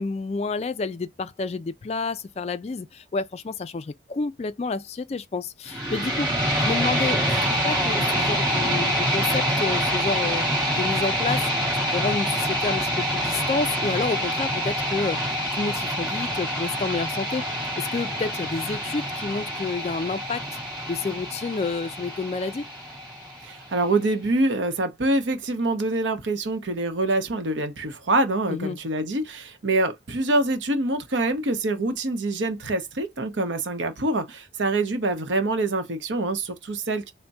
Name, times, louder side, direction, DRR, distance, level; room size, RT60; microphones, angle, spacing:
voice 1, 0.0-6.3 6.6-10.4 10.7-11.4 11.9-17.4 17.8-20.5 20.9-22.7 28.5-28.8, left 4 dB, 35° left, 0.3 m, -29 dB
sound 1, 5.7-23.7, equal, 25° right, 1.4 m, -26 dB
voice 2, 23.4-37.1, right 2 dB, 85° right, 0.8 m, -25 dB
4.1 x 2.1 x 3.4 m
head